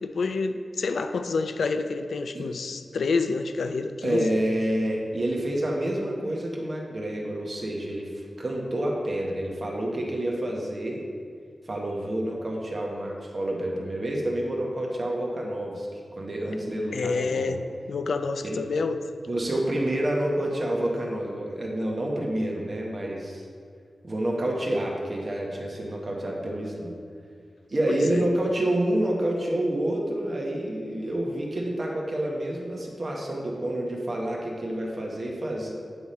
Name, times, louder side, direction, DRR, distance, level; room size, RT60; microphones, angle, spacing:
voice 1, 0.0-4.3 16.9-17.6 17.9-19.0 27.9-28.3, left 4 dB, 80° left, 8 dB, 0.3 m, -28 dB
voice 2, 4.0-11.0 11.7-17.6 18.4-18.6 19.3-23.5 24.0-26.9 27.7-35.7, right 1 dB, 35° right, -1 dB, 1.0 m, -28 dB
8.9 x 3.5 x 4.2 m, 2.1 s
wide cardioid pair, 165°, 0 cm